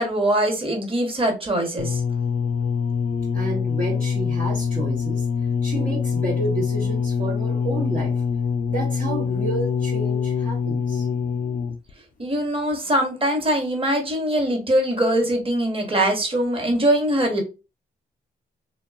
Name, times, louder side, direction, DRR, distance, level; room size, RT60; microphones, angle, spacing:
voice 1, 0.0-2.0 12.2-17.4, right 1 dB, 30° right, 1.1 m, -22 dB
sound 1, 1.8-11.9 12.7-12.8, left 6 dB, 50° left, 0.4 m, -24 dB
voice 2, 3.3-5.3 5.6-8.2 8.7-11.1, right 2 dB, 50° right, 0.8 m, -30 dB
2.6 x 2.2 x 2.3 m
cardioid pair, 65°, 18 cm